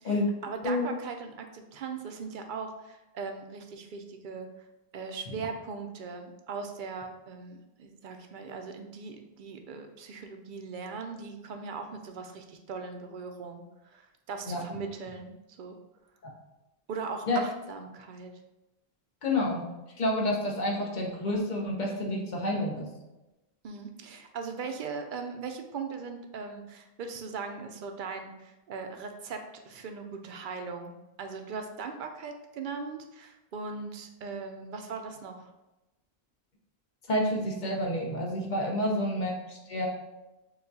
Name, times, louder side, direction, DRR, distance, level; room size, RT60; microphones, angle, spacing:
voice 1, 0.0-4.5 4.9-15.8 16.9-18.3 23.6-35.5, right 5 dB, 60° right, 5 dB, 0.6 m, -39 dB
voice 2, 19.2-19.6 20.0-22.9 37.1-39.9, left 1 dB, 50° left, -1 dB, 0.9 m, -29 dB
6.7 x 2.3 x 2.6 m, 1.0 s
omnidirectional pair, 1.0 m